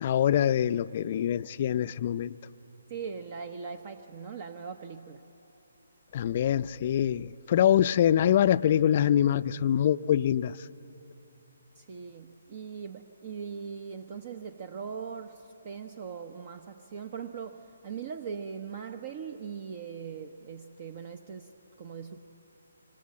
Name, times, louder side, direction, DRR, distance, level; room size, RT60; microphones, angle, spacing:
voice 1, 0.0-2.3 6.1-10.5, left 10 dB, 40° left, 14 dB, 0.5 m, -24 dB
voice 2, 2.9-5.3 11.8-22.2, right 6 dB, 40° right, 8 dB, 1.0 m, -40 dB
26.5 x 24.5 x 7.8 m, 2.9 s
figure-of-eight pair, 145°, 0 cm